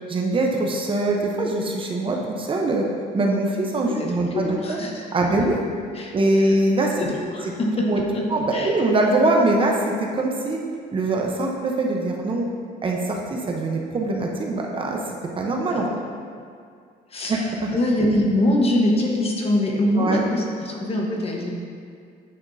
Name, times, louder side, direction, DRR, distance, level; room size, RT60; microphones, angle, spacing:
voice 1, 0.1-2.8 3.1-4.8 5.1-5.6 6.1-7.0 7.9-8.0 8.3-10.6 10.9-12.5 12.8-15.0 15.3-15.9 17.3-17.7 20.0-20.2, right 2 dB, 30° right, 0 dB, 0.7 m, -22 dB
voice 2, 3.9-5.0 5.9-6.1 7.0-8.3 8.5-8.8 15.7-16.0 17.1-17.5 17.7-21.5, left 1 dB, 35° left, -1 dB, 1.1 m, -23 dB
8.5 x 5.9 x 2.6 m, 2.2 s
cardioid pair, 110°, 17 cm